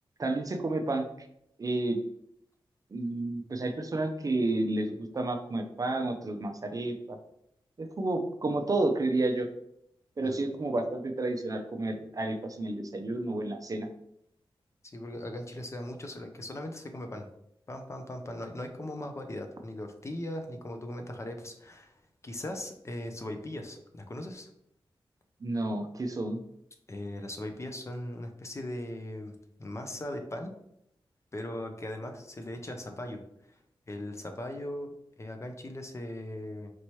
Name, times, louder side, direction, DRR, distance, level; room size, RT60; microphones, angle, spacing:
voice 1, 0.2-1.3 1.6-2.0 2.9-7.2 7.8-9.5 10.2-13.9 25.4-26.4, right 2 dB, 40° right, 5 dB, 0.5 m, -31 dB
voice 2, 14.8-17.3 17.7-21.9 22.2-24.5 26.9-30.5 31.3-33.2 33.9-34.9 35.2-36.7, left 1 dB, 30° left, 5 dB, 0.5 m, -39 dB
4.4 x 2.9 x 3.0 m, 0.76 s
wide cardioid pair, 105°, 9 cm